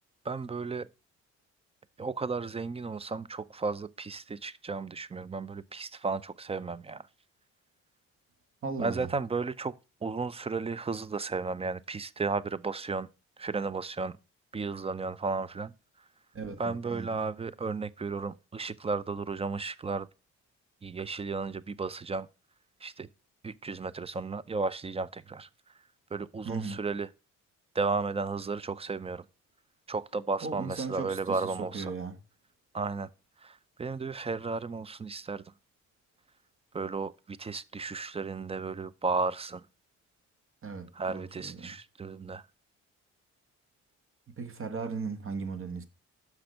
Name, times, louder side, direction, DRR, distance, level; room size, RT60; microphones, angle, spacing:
voice 1, 0.2-0.9 2.0-7.1 8.8-13.1 13.4-14.2 14.5-15.7 16.6-20.1 20.8-22.3 22.8-23.1 23.4-25.5 26.1-27.1 27.7-29.3 29.9-31.9 32.7-33.1 33.4-35.4 36.7-39.7 40.9-42.4, right 4 dB, 20° right, 0.5 m, -34 dB
voice 2, 8.6-9.1 16.3-17.1 26.4-26.8 30.4-32.2 40.6-41.7 44.3-45.8, right 4 dB, 45° right, 1.3 m, -37 dB
6.0 x 5.9 x 6.4 m
cardioid pair, 90°, 30 cm